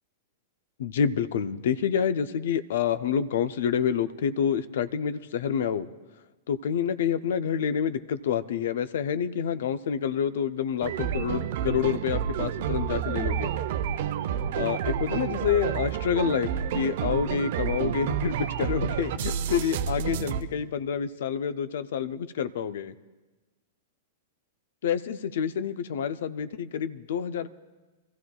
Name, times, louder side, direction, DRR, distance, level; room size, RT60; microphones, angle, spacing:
voice 1, 0.8-5.9 6.5-13.5 14.5-22.9 24.8-27.5, left 8 dB, 65° left, 13 dB, 0.5 m, -28 dB
sound 1, 10.8-20.4, right 9 dB, 60° right, 0.6 m, -29 dB
26.5 x 14.5 x 2.3 m, 1.2 s
hypercardioid pair, 105°, 0 cm